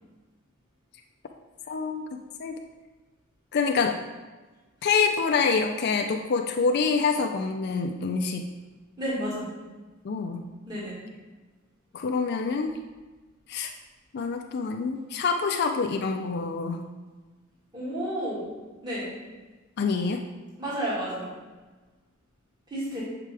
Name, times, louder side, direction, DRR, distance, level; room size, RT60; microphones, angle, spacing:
voice 1, 1.7-2.5 3.5-4.0 4.8-8.5 10.0-10.5 11.9-12.7 13.5-13.7 14.1-16.8 19.8-20.2, left 5 dB, 55° left, 4 dB, 0.4 m, -26 dB
voice 2, 9.0-9.5 10.7-11.0 17.7-18.5 18.8-19.1 20.6-21.3 22.7-23.0, equal, 20° right, -8 dB, 1.9 m, -31 dB
7.5 x 4.9 x 3.4 m, 1.3 s
head